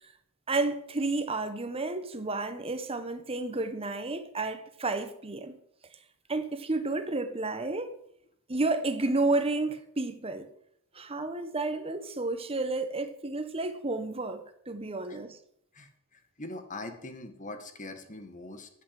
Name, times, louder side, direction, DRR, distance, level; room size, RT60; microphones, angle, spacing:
voice 1, 0.5-5.6 6.3-7.9 8.5-10.5 10.9-15.4, right 2 dB, 25° right, 1.3 m, -31 dB
voice 2, 15.7-18.7, left 2 dB, 35° left, 1.9 m, -42 dB
14.0 x 8.5 x 7.7 m
head